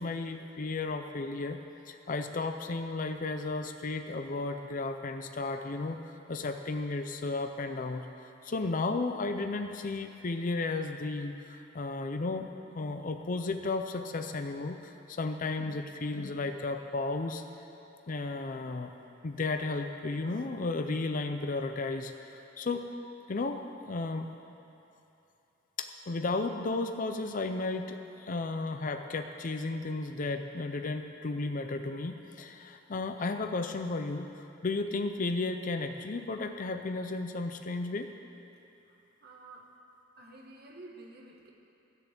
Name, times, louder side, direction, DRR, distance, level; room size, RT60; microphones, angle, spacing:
voice 1, 0.0-1.6 1.9-8.1 8.4-12.5 12.7-17.4 18.1-18.9 19.2-22.8 23.3-24.3 25.8-38.1, left 3 dB, 45° left, 6 dB, 0.5 m, -34 dB
voice 2, 39.2-39.8 40.2-41.5, right 2 dB, 55° right, 0 dB, 1.4 m, -50 dB
12.0 x 7.1 x 8.2 m, 2.8 s
head